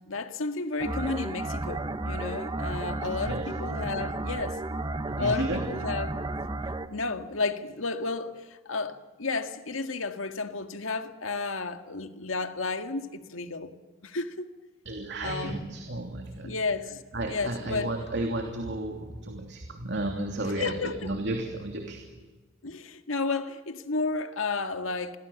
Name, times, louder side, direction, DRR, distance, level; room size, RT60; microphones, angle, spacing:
voice 1, 0.1-4.6 5.2-6.1 6.9-13.7 14.0-14.5 15.2-15.6 16.4-17.0 17.3-17.9 20.6-21.1 22.6-25.2, left 3 dB, 85° left, 1.9 m, -32 dB
sound 1, 0.8-6.9, right 2 dB, 20° right, 1.2 m, -33 dB
voice 2, 5.1-5.7 14.8-16.5 17.1-22.0, right 2 dB, 60° right, 3.0 m, -33 dB
29.5 x 22.5 x 7.2 m
head